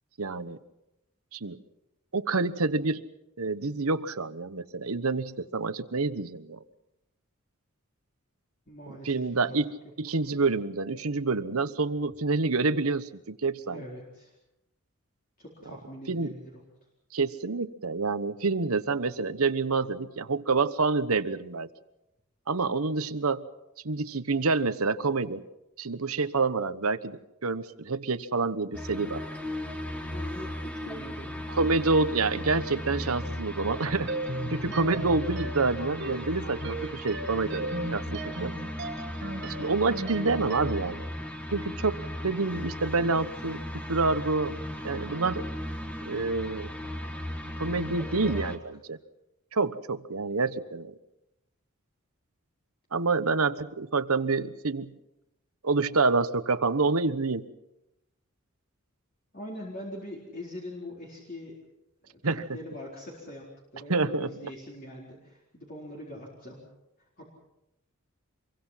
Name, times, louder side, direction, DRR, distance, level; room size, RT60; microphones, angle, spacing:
voice 1, 0.2-0.6 1.3-1.6 2.1-3.0 3.4-6.6 8.9-9.7 10.0-13.8 16.1-16.4 17.1-21.7 22.5-23.5 23.8-25.4 25.8-29.2 31.6-34.1 34.5-38.6 39.4-41.1 41.5-44.6 44.8-45.5 46.1-46.7 47.6-49.0 49.5-51.0 52.9-55.0 55.6-57.5 62.2-62.4 63.9-64.3, right 3 dB, 85° right, 13 dB, 1.2 m, -28 dB
voice 2, 8.7-9.6 13.6-14.3 15.4-16.6 30.1-31.4 34.5-34.8 47.8-48.5 59.3-61.6 62.1-66.6 67.2-67.3, left 1 dB, 40° left, -3 dB, 4.3 m, -42 dB
sound 1, 28.7-48.6, left 1 dB, 5° left, 1.6 m, -36 dB
sound 2, 34.1-40.9, right 2 dB, 55° right, 1.4 m, -37 dB
26.5 x 23.0 x 5.8 m, 0.89 s
head